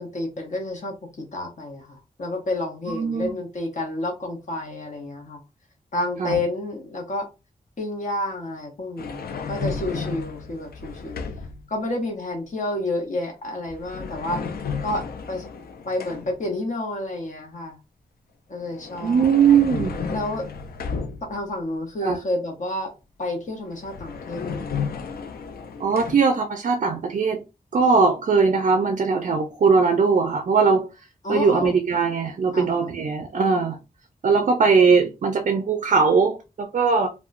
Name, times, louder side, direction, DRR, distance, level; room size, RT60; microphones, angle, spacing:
voice 1, 0.0-5.4 5.9-7.3 7.8-11.2 11.7-14.4 14.8-15.0 15.3-15.5 15.8-17.8 18.5-19.3 20.1-20.4 21.3-22.9 23.2-24.8 31.2-31.7 32.5-32.9, left 1 dB, 55° left, 0.7 m, -30 dB
voice 2, 2.9-3.3 6.2-6.4 19.0-20.0 22.0-22.2 25.8-27.4 27.7-30.9 31.3-33.8 34.2-37.1, right 5 dB, 55° right, 0.4 m, -20 dB
sound 1, 9.0-11.7 13.6-16.5 18.6-21.5 23.4-23.5 23.8-26.2, left 5 dB, 90° left, 0.4 m, -33 dB
2.8 x 2.1 x 2.4 m
wide cardioid pair, 135°, 15 cm